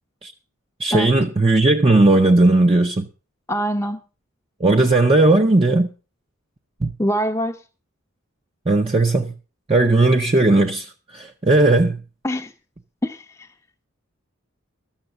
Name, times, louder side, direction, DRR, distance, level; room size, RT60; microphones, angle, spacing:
voice 1, 0.8-3.1 4.6-5.9 6.8-6.9 8.7-9.3 9.7-12.0, right 2 dB, 25° right, 0.6 m, -16 dB
voice 2, 3.5-4.0 7.0-7.6 12.2-12.5 13.0-13.5, equal, 15° left, 0.7 m, -24 dB
13.0 x 7.3 x 6.5 m
head